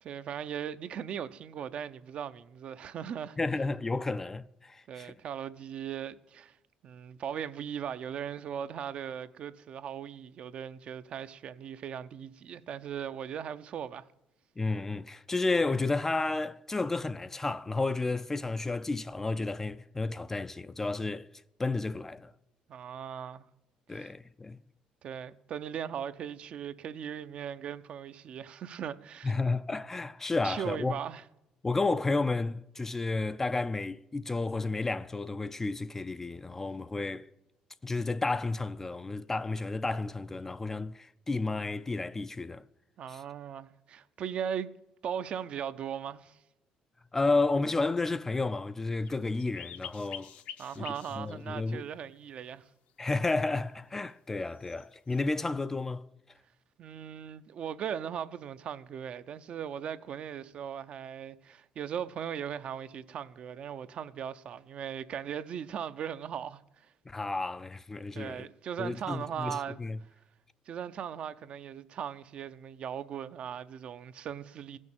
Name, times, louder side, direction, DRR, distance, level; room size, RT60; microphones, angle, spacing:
voice 1, 0.0-3.4 4.9-6.6 6.8-14.1 22.7-23.4 23.9-24.1 25.0-29.3 30.4-31.2 43.0-44.7 45.0-46.4 50.6-52.6 56.8-66.6 68.1-69.8 70.7-74.8, right 8 dB, 50° right, 0.6 m, -38 dB
voice 2, 3.4-5.1 14.6-21.3 21.6-22.3 23.9-24.6 29.2-30.9 31.6-37.3 37.8-42.6 43.1-43.2 47.1-50.3 50.8-50.9 51.1-51.9 53.0-56.0 67.1-68.5 68.8-70.0, left 3 dB, 15° left, 0.4 m, -31 dB
sound 1, 49.0-51.5 52.1-52.2 54.5-55.2, left 10 dB, 70° left, 0.9 m, -46 dB
16.0 x 6.4 x 8.9 m
cardioid pair, 130°, 2 cm